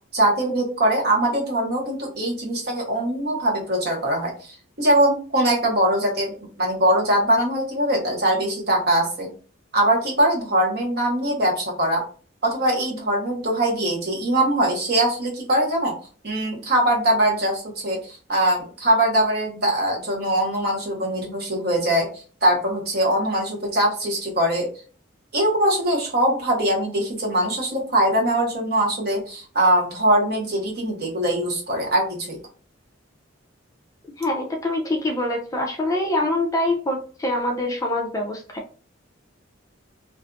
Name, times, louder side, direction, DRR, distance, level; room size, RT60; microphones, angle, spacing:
voice 1, 0.1-9.3 9.7-12.0 12.4-15.9 16.2-24.7 25.3-32.4, right 1 dB, 50° right, 0 dB, 0.9 m, -22 dB
voice 2, 34.2-38.6, left 1 dB, 15° left, 1 dB, 0.3 m, -25 dB
2.5 x 2.5 x 2.2 m, 0.39 s
head